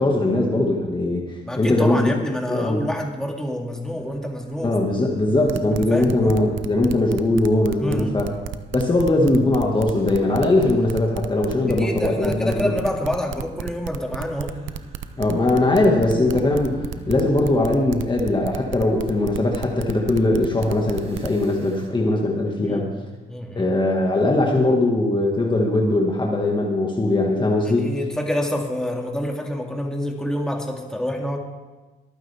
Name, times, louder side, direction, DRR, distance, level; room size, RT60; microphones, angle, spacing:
voice 1, 0.0-2.1 2.5-2.8 4.6-8.3 8.7-12.7 15.2-22.9 23.5-27.9, left 2 dB, 25° left, -1 dB, 1.8 m, -20 dB
voice 2, 1.4-4.8 5.7-6.4 7.8-8.2 11.7-14.5 22.6-22.9 23.3-23.7 27.7-31.4, left 1 dB, 5° left, 0 dB, 2.3 m, -27 dB
sound 1, 3.9-21.9, right 2 dB, 30° right, 2.2 m, -41 dB
sound 2, 5.5-21.4, right 11 dB, 75° right, 0.7 m, -33 dB
23.5 x 9.1 x 3.5 m, 1.2 s
cardioid pair, 90°, 20 cm